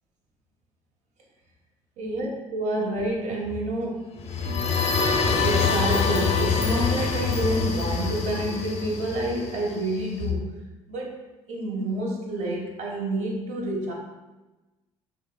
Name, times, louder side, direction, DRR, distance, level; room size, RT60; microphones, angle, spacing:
voice 1, 2.0-4.1 4.4-4.7 5.4-10.5 10.9-11.2 11.5-13.9, right 1 dB, 55° right, -1 dB, 0.8 m, -28 dB
sound 1, 4.2-9.9, left 5 dB, 50° left, 0.5 m, -25 dB
2.9 x 2.9 x 2.2 m, 1.1 s
hypercardioid pair, 60°, 14 cm